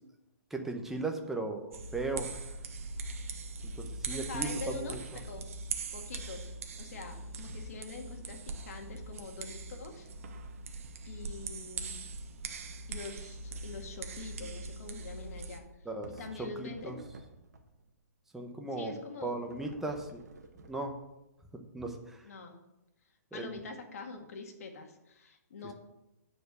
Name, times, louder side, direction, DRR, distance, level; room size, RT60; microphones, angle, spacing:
voice 1, 0.5-2.3 3.8-5.0 15.9-16.1 16.6-17.0 18.3-18.9 19.2-20.2 20.7-20.9 21.7-22.2 23.3-23.6, right 2 dB, 5° right, 3 dB, 0.8 m, -37 dB
sound 1, 1.7-15.6, right 4 dB, 55° right, 1.1 m, -41 dB
voice 2, 4.1-5.4 5.9-6.5 6.8-10.1 11.1-12.0 12.9-15.7 16.1-17.0 18.7-19.4 22.2-22.6 23.3-25.7, left 4 dB, 60° left, 4 dB, 1.7 m, -45 dB
sound 2, 13.5-13.8 14.1-14.2 16.0-17.9 19.5-21.3, right 3 dB, 80° right, 1.4 m, -52 dB
10.0 x 4.5 x 6.7 m, 0.92 s
hypercardioid pair, 155°, 9 cm